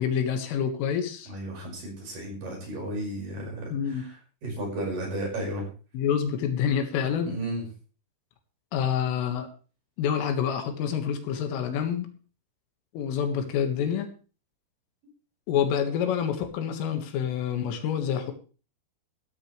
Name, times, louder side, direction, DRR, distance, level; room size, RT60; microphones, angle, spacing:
voice 1, 0.0-1.3 3.7-4.1 5.9-7.3 8.7-9.5 10.0-12.1 12.9-14.1 15.5-18.3, left 8 dB, 85° left, 6 dB, 4.3 m, -27 dB
voice 2, 1.3-5.7 7.2-7.6, right 1 dB, 45° right, 0 dB, 7.1 m, -34 dB
16.0 x 13.5 x 3.3 m, 0.36 s
omnidirectional pair, 5.7 m